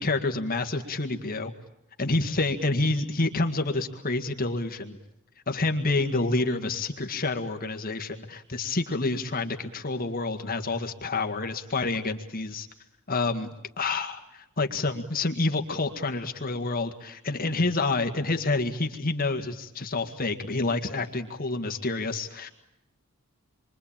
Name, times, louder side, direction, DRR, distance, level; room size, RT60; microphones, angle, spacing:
voice 1, 0.0-1.5 2.0-5.0 5.5-12.7 13.1-13.5 13.8-22.5, left 3 dB, 40° left, 6 dB, 1.8 m, -28 dB
28.0 x 24.0 x 8.9 m, 0.85 s
head